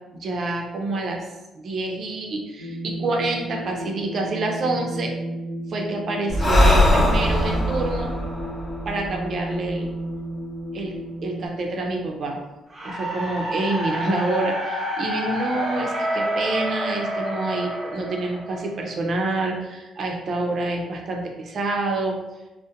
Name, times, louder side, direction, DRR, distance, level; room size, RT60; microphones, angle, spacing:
voice 1, 0.1-1.3 1.5-5.1 5.7-8.1 8.9-9.9 10.7-11.0 11.2-12.4 12.8-22.2, right 2 dB, 55° right, 1 dB, 0.4 m, -27 dB
sound 1, 2.6-11.5, right 1 dB, 90° left, 0.7 m, -33 dB
Breathing, 6.3-9.8, left 1 dB, 25° left, 0.5 m, -20 dB
sound 2, 12.7-18.9, equal, 15° right, 0.7 m, -28 dB
2.7 x 2.0 x 2.3 m, 1.0 s
cardioid pair, 90°, 0 cm